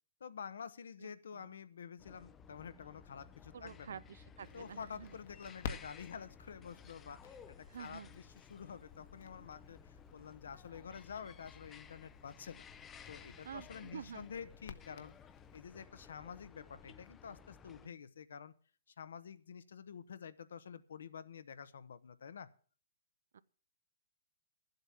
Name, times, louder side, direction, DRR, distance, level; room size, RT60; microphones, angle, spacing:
voice 1, 0.2-4.0 4.5-8.2 8.5-12.6 13.1-15.1 15.5-18.5 18.9-22.5, left 7 dB, 80° left, 14 dB, 1.0 m, -49 dB
voice 2, 1.0-1.6 3.5-5.2 7.7-8.1 13.4-14.3 17.7-17.9 23.3-23.4, right 7 dB, 75° right, 17 dB, 0.5 m, -49 dB
sound 1, 2.0-17.9, left 7 dB, 15° left, 0.5 m, -57 dB
Crackle, 4.4-15.6, left 6 dB, 60° left, 1.3 m, -53 dB
11.5 x 8.0 x 7.0 m, 0.42 s
hypercardioid pair, 140°, 0 cm